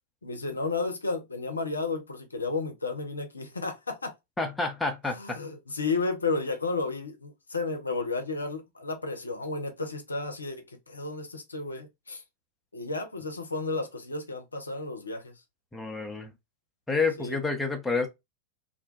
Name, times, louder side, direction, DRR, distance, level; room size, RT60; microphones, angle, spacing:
voice 1, 0.2-4.1 5.1-12.2 12.7-15.3 17.2-17.4, left 3 dB, 80° left, 0.5 m, -32 dB
voice 2, 4.4-5.4 15.7-16.3 16.9-18.1, left 3 dB, 10° left, 0.6 m, -29 dB
2.6 x 2.2 x 2.5 m
figure-of-eight pair, 90°, 0 cm